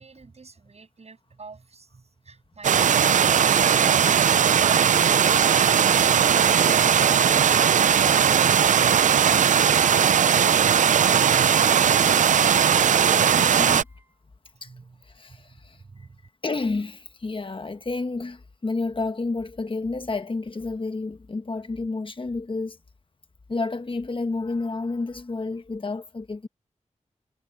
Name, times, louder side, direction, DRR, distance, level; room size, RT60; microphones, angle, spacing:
voice 1, 0.0-3.6 3.9-5.1 5.6-9.8 14.5-15.0 15.3-16.2, right 4 dB, 60° right, 7.9 m, -47 dB
sound 1, 2.6-13.8, right 8 dB, 90° right, 0.4 m, -18 dB
sound 2, 2.8-14.2, right 2 dB, 20° right, 5.0 m, -49 dB
voice 2, 9.8-10.5 12.4-12.6 13.3-13.9 14.6-14.7 15.0-15.8 16.4-22.8 23.5-26.5, left 3 dB, 45° left, 1.3 m, -30 dB
wide cardioid pair, 75°, 12 cm